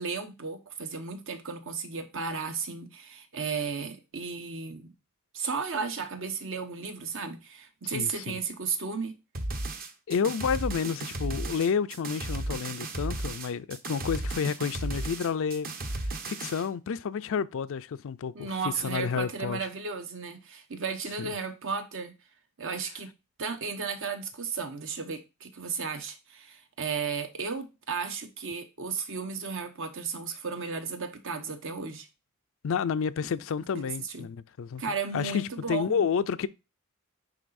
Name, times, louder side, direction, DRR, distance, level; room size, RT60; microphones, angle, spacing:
voice 1, 0.0-4.9 5.3-9.1 18.3-22.1 22.6-23.1 23.4-32.1 33.7-33.8 34.1-34.3 34.8-36.0, right 5 dB, 65° right, 1.0 m, -34 dB
voice 2, 7.8-8.4 10.1-15.7 16.0-18.5 18.8-19.7 21.2-21.3 32.6-36.5, left 6 dB, 65° left, 0.4 m, -30 dB
sound 1, 9.3-16.7, right 2 dB, 45° right, 0.9 m, -34 dB
9.8 x 3.9 x 2.5 m
head